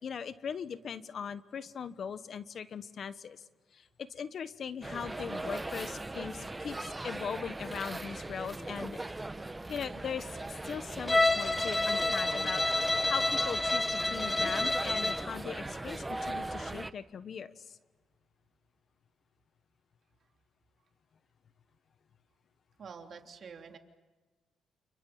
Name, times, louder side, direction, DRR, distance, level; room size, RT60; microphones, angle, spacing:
voice 1, 0.0-3.4 3.7-9.0 9.7-17.8, left 7 dB, 55° left, 13 dB, 1.3 m, -40 dB
sound 1, 4.8-16.9, right 2 dB, 15° right, 1.0 m, -39 dB
Bowed string instrument, 11.1-15.3, left 2 dB, 15° left, 0.9 m, -29 dB
voice 2, 22.8-23.8, right 6 dB, 50° right, 4 dB, 3.3 m, -48 dB
29.5 x 28.5 x 7.2 m, 1.3 s
cardioid pair, 90°, 0 cm